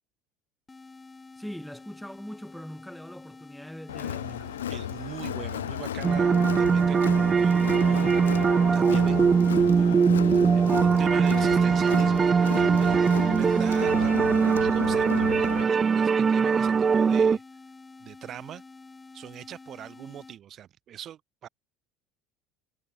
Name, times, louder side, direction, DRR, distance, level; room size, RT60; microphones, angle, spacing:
sound 1, 0.7-20.4, left 3 dB, 20° left, 2.3 m, -49 dB
voice 1, 1.4-4.6, equal, ahead, 6.4 m, -41 dB
Crowd, 3.9-15.6, left 10 dB, 85° left, 1.7 m, -34 dB
voice 2, 4.7-8.4 8.7-17.4 18.0-18.6 19.1-21.5, right 10 dB, 45° right, 3.3 m, -42 dB
sound 2, 6.0-17.4, right 5 dB, 30° right, 0.6 m, -21 dB
hypercardioid pair, 70°, 0 cm